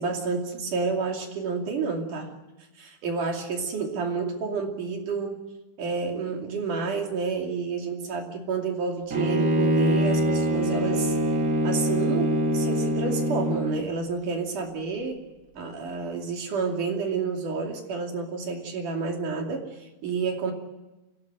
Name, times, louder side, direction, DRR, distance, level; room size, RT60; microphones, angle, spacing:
voice 1, 0.0-2.3 2.8-5.4 5.8-11.2 11.6-15.2 15.6-20.5, right 4 dB, 55° right, 2 dB, 4.0 m, -30 dB
Bowed string instrument, 9.1-13.9, right 1 dB, 70° right, 0.8 m, -24 dB
26.0 x 17.5 x 7.8 m, 1.1 s
omnidirectional pair, 4.6 m